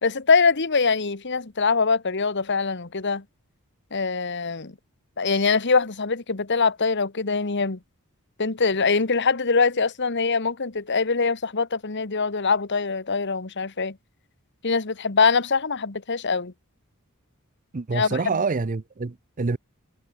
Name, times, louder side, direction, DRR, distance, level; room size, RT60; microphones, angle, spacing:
voice 1, 0.0-3.2 3.9-4.7 5.2-7.8 8.4-13.9 14.6-16.5 17.9-18.2, left 4 dB, 55° left, 1.4 m, -23 dB
voice 2, 17.7-19.6, right 4 dB, 40° right, 0.6 m, -26 dB
head